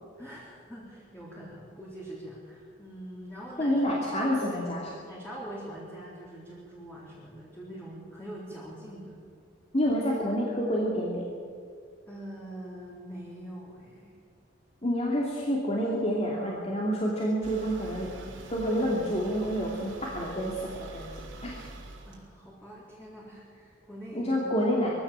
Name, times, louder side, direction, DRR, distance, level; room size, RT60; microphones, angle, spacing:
voice 1, 0.2-4.6 5.0-9.2 12.1-14.2 22.1-24.5, right 1 dB, 10° left, -6 dB, 3.8 m, -43 dB
voice 2, 3.6-4.8 9.7-11.2 14.8-18.1 18.5-21.7 24.1-24.9, equal, 30° left, -3 dB, 2.7 m, -28 dB
sound 1, 17.4-22.3, right 1 dB, 75° right, 3.6 m, -45 dB
22.0 x 16.0 x 7.6 m, 2.1 s
head